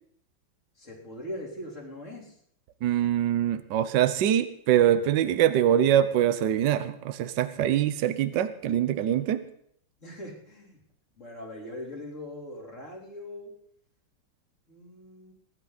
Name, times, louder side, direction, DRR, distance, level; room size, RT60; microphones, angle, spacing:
voice 1, 0.8-2.4 10.0-10.8 11.2-13.6 14.7-15.3, left 1 dB, 40° left, -3 dB, 4.0 m, -41 dB
voice 2, 2.8-9.4, right 10 dB, 70° right, 11 dB, 1.4 m, -24 dB
23.5 x 11.5 x 4.1 m, 0.67 s
omnidirectional pair, 2.1 m